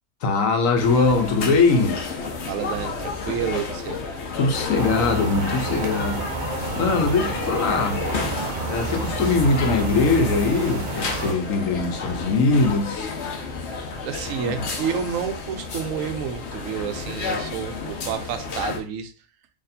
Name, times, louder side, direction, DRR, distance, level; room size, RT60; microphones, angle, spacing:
voice 1, 0.2-2.0 4.3-6.3 6.8-8.0 8.7-13.1 14.4-14.6, left 4 dB, 80° left, 1.2 m, -21 dB
sound 1, 0.8-18.8, left 4 dB, 60° left, 1.0 m, -31 dB
voice 2, 2.5-4.0 14.0-19.1, right 8 dB, 85° right, 1.0 m, -29 dB
sound 2, 4.8-11.3, right 3 dB, 55° right, 0.6 m, -30 dB
4.1 x 3.1 x 2.6 m
omnidirectional pair, 1.4 m